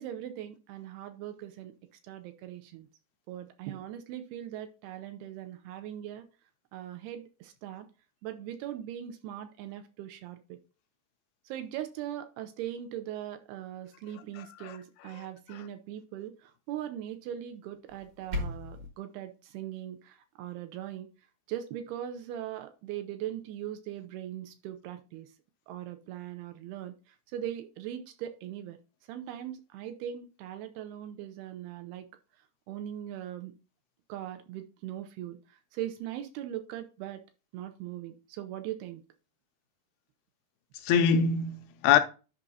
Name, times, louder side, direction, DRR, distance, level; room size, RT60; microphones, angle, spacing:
voice 1, 0.0-1.7 2.0-2.9 3.3-6.3 6.7-7.9 8.2-10.6 11.5-21.1 21.5-25.3 25.7-28.8 29.1-32.1 32.7-33.5 34.1-37.2 37.5-39.0, right 11 dB, 80° right, 2.4 m, -40 dB
voice 2, 14.4-14.8 15.1-15.3 15.5-15.6 40.8-42.0, left 7 dB, 80° left, 2.4 m, -25 dB
sound 1, 17.9-18.9, left 2 dB, 55° right, 1.4 m, -36 dB
11.5 x 5.2 x 2.7 m
omnidirectional pair, 4.8 m